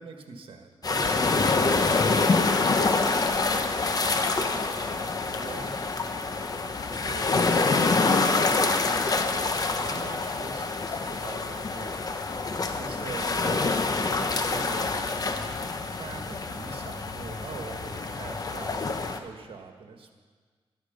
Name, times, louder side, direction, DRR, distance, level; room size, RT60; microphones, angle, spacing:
voice 1, 0.0-2.6 3.1-4.6 5.1-6.0 6.9-9.0 9.8-12.0 12.3-13.8 14.1-15.0 15.9-20.1, right 4 dB, 65° right, 4 dB, 1.6 m, -43 dB
sound 1, 0.8-19.2, left 3 dB, 40° left, 0.9 m, -26 dB
13.5 x 12.0 x 5.2 m, 1.5 s
cardioid pair, 100°, 10 cm